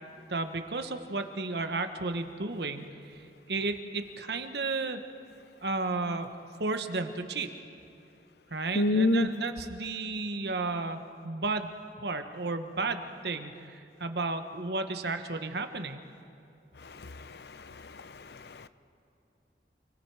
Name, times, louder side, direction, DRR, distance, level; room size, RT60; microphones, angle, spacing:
voice 1, 0.3-5.0 5.6-6.3 6.6-7.5 8.5-11.7 12.0-16.0, right 3 dB, 70° right, 7 dB, 1.2 m, -33 dB
voice 2, 8.8-9.3 16.8-17.4 17.8-18.7, left 2 dB, 65° left, 13 dB, 0.6 m, -28 dB
29.0 x 19.0 x 4.8 m, 2.6 s
head